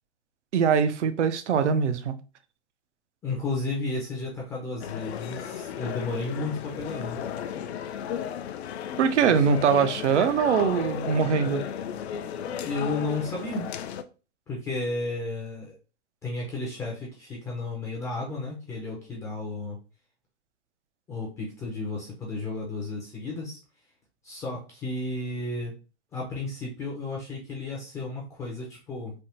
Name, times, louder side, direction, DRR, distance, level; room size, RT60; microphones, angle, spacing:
voice 1, 0.5-2.2 9.0-11.6, right 6 dB, 85° right, 0.6 m, -22 dB
voice 2, 3.2-7.2 9.2-9.3 12.6-13.7 14.5-15.8 16.2-19.8 21.1-23.6 24.2-25.7 26.1-29.1, left 2 dB, 10° left, 0.4 m, -33 dB
sound 1, 4.8-14.0, left 9 dB, 65° left, 0.5 m, -35 dB
3.4 x 2.1 x 2.7 m
hypercardioid pair, 135°, 34 cm